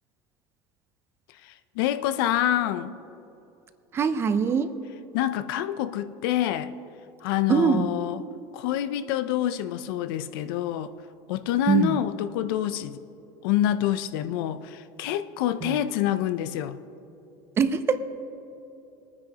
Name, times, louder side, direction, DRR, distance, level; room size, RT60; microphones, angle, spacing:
voice 1, 1.4-3.0 5.1-6.7 7.2-8.2 8.5-10.9 11.3-13.0 13.4-16.8, left 12 dB, 90° left, 12 dB, 0.5 m, -27 dB
voice 2, 3.9-4.8 7.5-8.0 11.7-12.0 15.6-15.8 17.6-18.0, right 6 dB, 20° right, 11 dB, 0.5 m, -23 dB
23.0 x 9.6 x 2.9 m, 2.8 s
cardioid pair, 165°, 11 cm